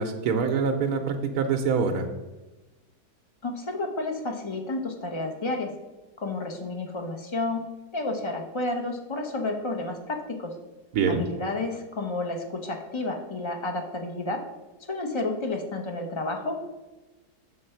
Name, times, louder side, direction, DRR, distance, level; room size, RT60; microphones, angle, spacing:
voice 1, 0.0-2.1 10.9-11.3, right 5 dB, 80° right, 3 dB, 1.2 m, -25 dB
voice 2, 3.4-5.7 6.2-7.7 7.9-10.5 11.1-14.4 14.8-16.6, left 2 dB, 40° left, 3 dB, 0.4 m, -31 dB
7.6 x 3.2 x 5.6 m, 1.1 s
omnidirectional pair, 1.6 m